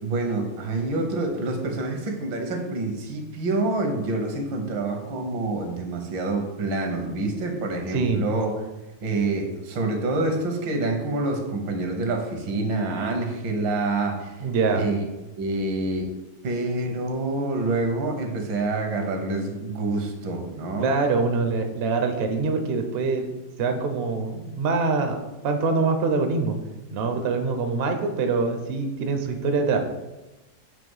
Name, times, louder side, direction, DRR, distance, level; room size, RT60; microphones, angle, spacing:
voice 1, 0.0-8.5 9.0-14.3 14.7-15.0 15.4-16.1 16.4-20.9, right 2 dB, 85° right, 3 dB, 1.8 m, -27 dB
voice 2, 7.9-8.2 14.4-14.8 20.8-23.3 23.6-26.6 26.9-29.9, right 4 dB, 65° right, 5 dB, 0.5 m, -24 dB
6.7 x 3.1 x 5.5 m, 1.1 s
omnidirectional pair, 2.0 m